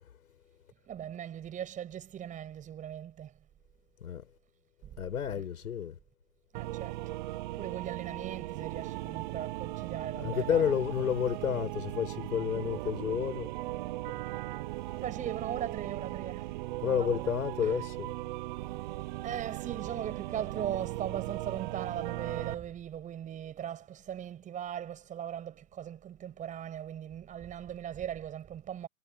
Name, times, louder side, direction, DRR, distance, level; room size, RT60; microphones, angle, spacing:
voice 1, 0.9-3.3 4.8-5.0 5.3-5.4 6.5-7.0 7.5-10.8 15.0-17.8 19.2-28.9, right 10 dB, 20° right, 7.7 m, -39 dB
voice 2, 5.0-5.9 10.2-13.5 16.8-18.1, left 8 dB, 85° left, 6.9 m, -30 dB
sound 1, 6.5-22.5, right 18 dB, 35° right, 0.8 m, -38 dB
hypercardioid pair, 155°, 42 cm